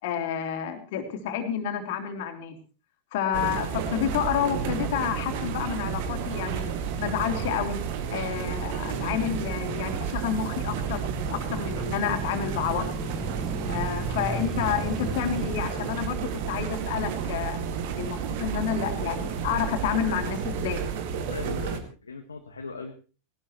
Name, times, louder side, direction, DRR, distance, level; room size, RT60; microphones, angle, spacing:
voice 1, 0.0-2.6 3.1-7.8 8.1-11.0 11.3-12.9 13.7-17.6 18.0-20.8, left 9 dB, 50° left, 5 dB, 3.1 m, -29 dB
sound 1, 3.3-21.8, right 7 dB, 50° right, 2.3 m, -31 dB
Male speech man speaking / Motorcycle / Idling, 7.0-15.9, left 1 dB, ahead, 0.6 m, -39 dB
voice 2, 21.2-22.9, left 4 dB, 75° left, 2 dB, 1.7 m, -38 dB
19.5 x 18.5 x 3.2 m, 0.36 s
figure-of-eight pair, 90°, 0 cm